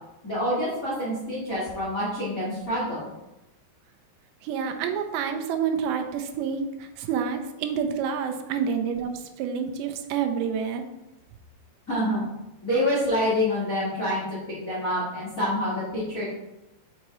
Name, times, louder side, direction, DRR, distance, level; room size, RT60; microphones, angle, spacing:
voice 1, 0.2-3.1 11.9-12.2 12.6-16.2, left 1 dB, 90° left, -8 dB, 0.7 m, -27 dB
voice 2, 4.4-10.8, right 7 dB, 85° right, 5 dB, 2.8 m, -28 dB
6.3 x 5.7 x 3.0 m, 0.98 s
omnidirectional pair, 5.0 m